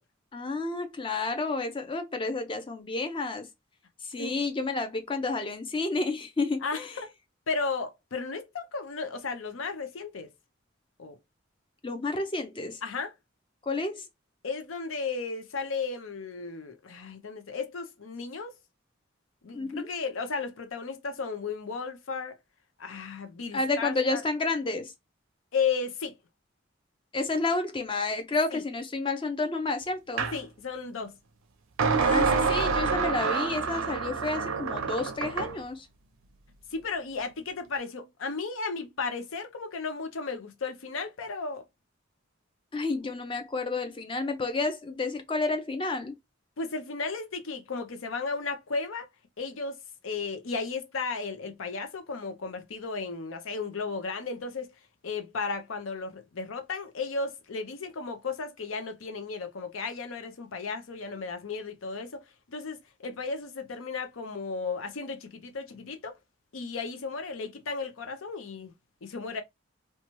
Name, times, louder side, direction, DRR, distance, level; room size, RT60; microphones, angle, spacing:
voice 1, 0.3-3.5 4.0-6.9 11.8-12.8 13.6-14.0 19.5-19.9 23.5-24.9 27.1-30.2 32.0-35.9 42.7-46.1, left 3 dB, 25° left, 0.5 m, -30 dB
voice 2, 6.6-7.1 7.5-10.3 11.0-11.2 12.8-13.1 14.4-18.5 19.4-22.4 22.8-24.2 25.5-26.2 28.5-28.6 30.3-31.1 36.7-41.7 46.6-49.1 49.4-49.8 50.0-54.7 55.0-66.2 66.5-68.7 69.0-69.4, left 4 dB, 80° left, 0.6 m, -34 dB
sound 1, 30.2-30.4 31.8-35.6, right 5 dB, 80° right, 0.5 m, -27 dB
2.7 x 2.2 x 2.9 m
head